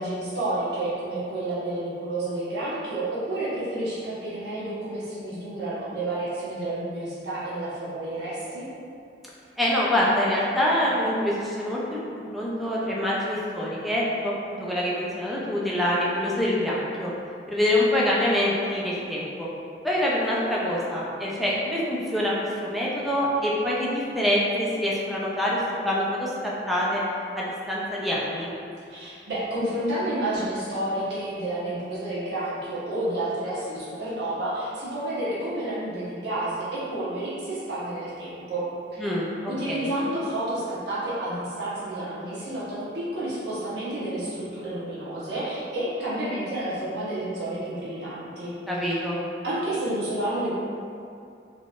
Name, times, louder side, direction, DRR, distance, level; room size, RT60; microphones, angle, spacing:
voice 1, 0.0-8.7 28.9-39.1 39.5-48.5 48.8-49.0 49.4-50.5, right 1 dB, 70° right, -9 dB, 1.1 m, -30 dB
voice 2, 9.6-17.1 17.5-19.5 19.8-27.0 27.3-28.5 39.0-39.3 39.7-39.9 48.7-49.2, left 1 dB, ahead, -6 dB, 0.5 m, -25 dB
3.9 x 2.9 x 2.4 m, 2.5 s
head